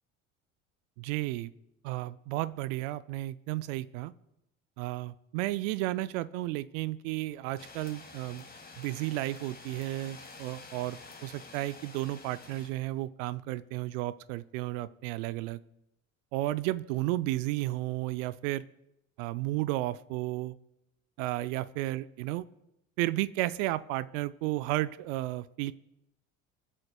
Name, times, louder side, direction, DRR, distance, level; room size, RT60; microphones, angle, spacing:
voice 1, 1.0-1.5 1.8-4.1 4.8-8.4 8.8-15.6 16.3-18.6 19.2-20.6 21.2-22.4 23.0-25.7, right 17 dB, 70° right, 16 dB, 0.5 m, -33 dB
sound 1, 7.6-12.7, left 3 dB, 20° left, 2.1 m, -49 dB
27.5 x 9.9 x 2.3 m, 0.84 s
hypercardioid pair, 65°, 41 cm